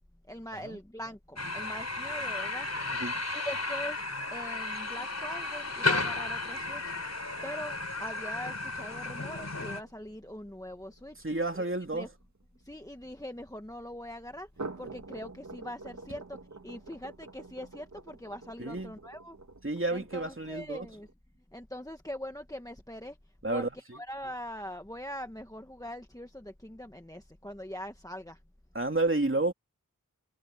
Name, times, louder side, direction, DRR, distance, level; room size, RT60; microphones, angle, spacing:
voice 1, 0.3-2.7 3.3-4.1 4.3-6.9 7.4-11.2 11.5-11.7 11.9-12.1 12.6-14.5 14.8-16.4 16.6-19.4 19.9-21.1 21.5-23.2 23.5-28.4, equal, 10° left, 1.4 m, -42 dB
sound 1, 1.4-9.8, left 3 dB, 50° left, 3.8 m, -34 dB
voice 2, 2.8-3.2 11.2-12.1 18.6-18.9 19.6-20.9 23.4-24.0 28.7-29.5, right 2 dB, 35° right, 2.7 m, -31 dB
sound 2, 8.7-13.2 14.4-21.1, right 3 dB, 50° right, 2.1 m, -47 dB
wide cardioid pair, 60°, 35 cm